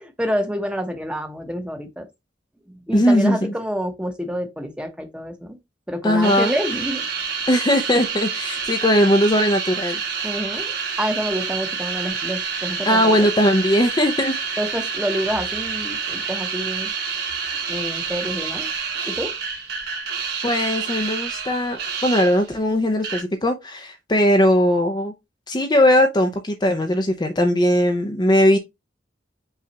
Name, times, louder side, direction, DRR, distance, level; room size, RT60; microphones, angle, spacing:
voice 1, 0.0-2.1 2.9-5.6 5.9-7.0 10.2-13.3 14.6-16.9 17.7-18.7 19.0-19.3, equal, 5° right, 0.8 m, -28 dB
voice 2, 2.9-3.5 6.0-6.6 7.5-10.0 12.9-14.4 20.4-25.1 25.5-28.6, equal, 25° left, 0.5 m, -19 dB
sound 1, 6.2-22.6 23.0-23.2, right 6 dB, 60° right, 1.4 m, -28 dB
5.6 x 2.4 x 4.0 m
head